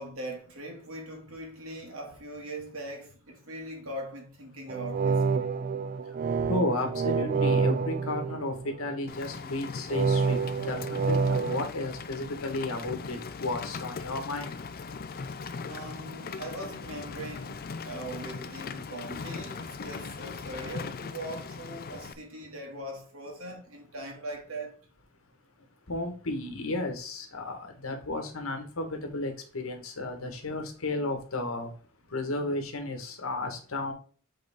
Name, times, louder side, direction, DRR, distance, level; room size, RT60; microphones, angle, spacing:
voice 1, 0.0-5.5 15.6-24.7, right 1 dB, 85° right, 2.1 m, -41 dB
sound 1, 4.7-9.0 9.9-11.7, right 5 dB, 40° right, 0.3 m, -28 dB
voice 2, 6.3-14.5 25.9-31.7 32.1-33.9, left 2 dB, 85° left, 1.4 m, -33 dB
Rain, 9.1-22.1, left 5 dB, 45° left, 0.4 m, -39 dB
7.8 x 3.8 x 3.6 m
head